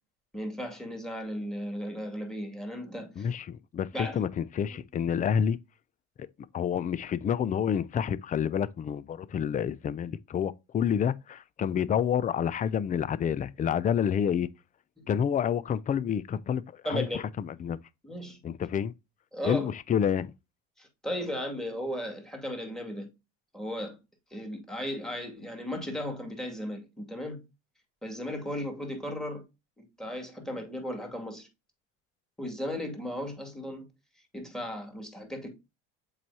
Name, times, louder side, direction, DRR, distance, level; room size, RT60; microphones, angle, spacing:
voice 1, 0.3-3.3 3.9-4.2 4.7-4.8 15.0-15.1 16.8-17.2 18.0-18.4 19.3-19.7 20.8-23.1 23.5-24.0 24.3-27.4 28.0-29.4 29.8-31.5 32.4-33.9 34.3-35.5, equal, ahead, 2.2 m, -36 dB
voice 2, 3.2-5.6 6.5-14.5 15.1-17.8 18.4-18.9 19.4-20.3, left 8 dB, 25° left, 0.4 m, -28 dB
7.6 x 4.7 x 2.8 m
supercardioid pair, 105°, 33 cm